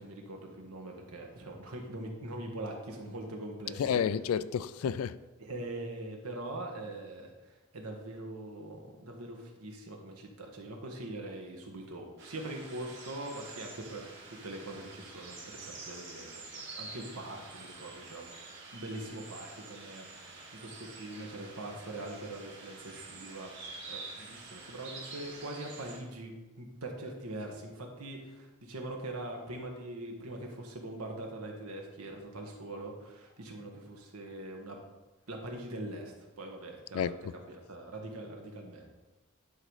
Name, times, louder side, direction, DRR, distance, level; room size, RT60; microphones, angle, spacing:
voice 1, 0.0-4.1 5.4-16.3 16.7-18.3 18.7-20.1 20.6-34.8 35.3-38.9, right 1 dB, 85° right, 1.5 m, -42 dB
voice 2, 3.8-5.2 36.9-37.3, left 7 dB, 75° left, 0.3 m, -30 dB
sound 1, 12.2-26.0, right 3 dB, 55° right, 1.9 m, -47 dB
11.0 x 4.0 x 4.9 m
head